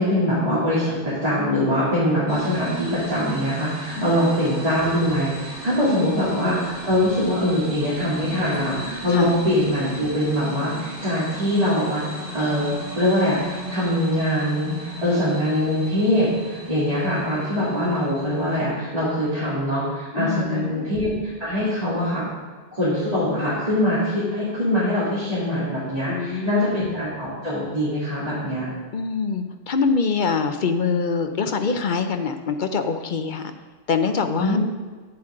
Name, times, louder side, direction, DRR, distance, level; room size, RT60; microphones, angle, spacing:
voice 1, 0.0-12.0 12.3-22.3 22.7-28.7 34.4-34.6, equal, 30° right, -12 dB, 2.9 m, -23 dB
sound 1, 2.3-18.6, equal, 85° right, 2.7 m, -36 dB
voice 2, 4.0-4.3 5.9-6.1 9.1-9.3 20.1-20.9 26.1-26.8 28.9-33.5 33.9-34.6, left 5 dB, 50° left, 7 dB, 0.7 m, -24 dB
10.5 x 8.9 x 3.8 m, 1.4 s
omnidirectional pair, 1.2 m